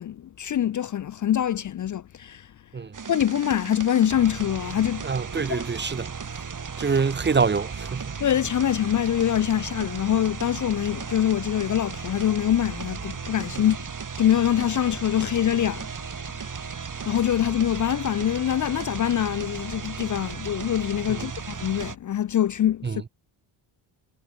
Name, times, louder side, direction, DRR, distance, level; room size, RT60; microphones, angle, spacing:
voice 1, 0.0-2.5 3.1-5.2 5.5-5.7 8.2-13.8 14.2-15.9 16.4-16.7 17.0-23.1, left 11 dB, 40° left, 0.5 m, -24 dB
sound 1, 2.9-22.0, right 5 dB, 40° right, 4.2 m, -35 dB
voice 2, 5.0-6.1 6.8-8.2 21.1-21.3 22.8-23.0, right 5 dB, 25° right, 0.7 m, -25 dB
cardioid pair, 75°, 48 cm